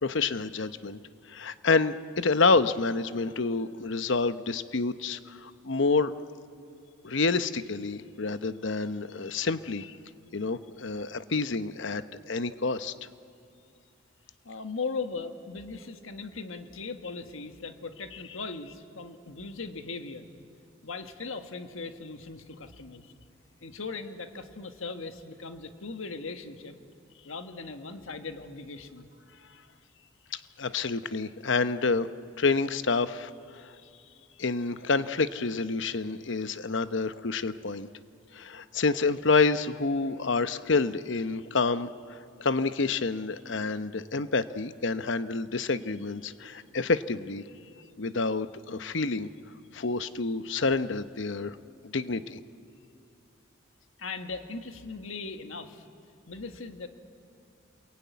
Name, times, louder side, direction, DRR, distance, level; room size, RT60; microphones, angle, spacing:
voice 1, 0.0-1.0 1.3-6.1 7.0-10.0 10.3-12.9 30.3-32.1 32.4-33.7 34.4-37.9 38.3-41.9 42.4-47.4 48.0-49.3 49.7-51.6 51.8-52.4, left 4 dB, 70° left, 13 dB, 0.8 m, -28 dB
voice 2, 14.4-20.3 20.8-23.0 23.6-26.8 27.2-29.1 54.0-55.8 56.3-56.9, left 4 dB, 90° left, 7 dB, 1.6 m, -38 dB
29.0 x 22.0 x 9.4 m, 2.4 s
head